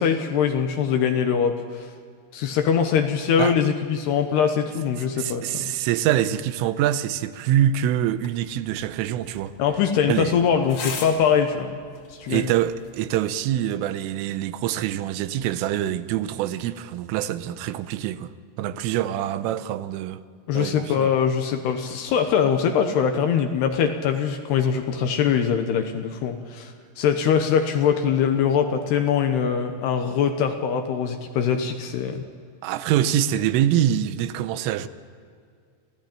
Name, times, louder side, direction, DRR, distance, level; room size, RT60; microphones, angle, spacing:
voice 1, 0.0-1.9 2.3-5.7 9.6-11.8 12.2-12.5 20.5-32.2, left 7 dB, 70° left, 2.7 m, -22 dB
voice 2, 5.0-9.5 10.1-10.3 12.3-18.3 18.6-20.2 20.6-21.1 32.6-34.9, right 11 dB, 85° right, 3.4 m, -25 dB
sound 1, 8.1-13.1, left 5 dB, 45° left, 3.0 m, -40 dB
26.5 x 16.0 x 8.9 m
omnidirectional pair, 5.7 m